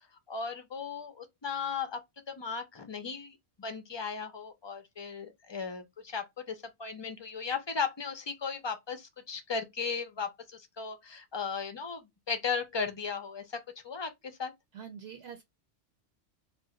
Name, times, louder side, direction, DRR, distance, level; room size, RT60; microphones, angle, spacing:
voice 1, 0.3-14.5, left 5 dB, 40° left, 0.4 m, -36 dB
voice 2, 14.7-15.4, right 8 dB, 70° right, 0.8 m, -44 dB
2.5 x 2.1 x 3.7 m
omnidirectional pair, 1.1 m